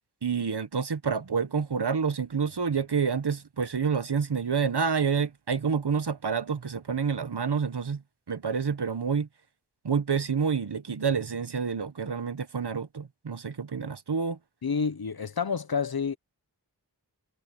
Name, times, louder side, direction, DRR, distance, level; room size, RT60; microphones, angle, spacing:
voice 1, 0.2-8.0 8.3-9.3 9.8-14.4, right 6 dB, 75° right, 1.3 m, -28 dB
voice 2, 14.6-16.2, left 5 dB, 60° left, 1.0 m, -29 dB
wide cardioid pair, 60°, 41 cm